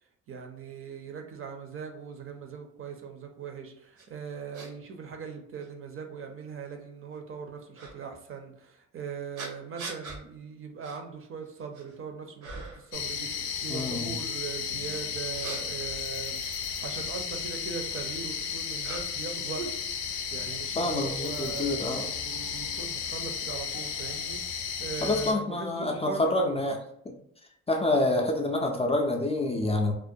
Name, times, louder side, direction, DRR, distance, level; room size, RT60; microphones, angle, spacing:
voice 1, 0.3-19.7 20.1-26.5, right 6 dB, 45° right, 4 dB, 0.5 m, -40 dB
sound 1, 4.0-4.1 4.5-4.7 5.6-5.7 7.7-7.9 9.4-10.2 10.8-11.0 11.4-12.0 12.4-12.9 15.1-17.1 18.0-19.3 19.6-20.4, right 4 dB, 85° right, 0.8 m, -42 dB
sound 2, 12.9-25.3, left 7 dB, 90° left, 0.5 m, -34 dB
voice 2, 13.7-14.2 20.8-22.1 25.0-26.8 27.1-27.2 27.7-29.9, left 2 dB, 20° left, 2 dB, 0.3 m, -27 dB
2.4 x 2.1 x 2.6 m, 0.72 s
cardioid pair, 90°, 30 cm